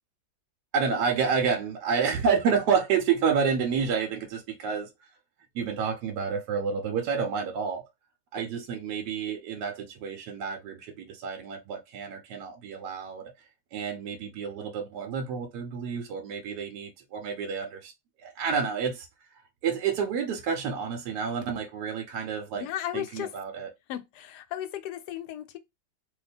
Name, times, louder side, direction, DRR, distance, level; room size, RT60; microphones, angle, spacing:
voice 1, 0.7-4.9 5.5-7.8 8.3-13.3 13.7-17.9 18.2-19.1 19.6-22.6 22.9-23.7, right 6 dB, 75° right, 1.1 m, -29 dB
voice 2, 22.5-23.4 23.9-25.6, left 12 dB, 75° left, 1.1 m, -35 dB
2.8 x 2.2 x 4.0 m
omnidirectional pair, 1.8 m